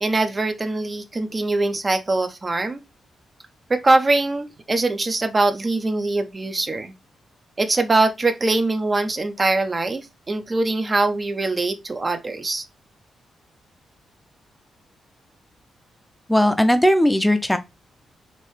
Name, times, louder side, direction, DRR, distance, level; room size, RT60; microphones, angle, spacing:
voice 1, 0.0-2.8 3.7-6.9 7.6-12.6, right 2 dB, 35° right, 0.6 m, -22 dB
voice 2, 16.3-17.6, equal, 5° left, 0.5 m, -17 dB
3.2 x 2.9 x 3.2 m
supercardioid pair, 50°, 0 cm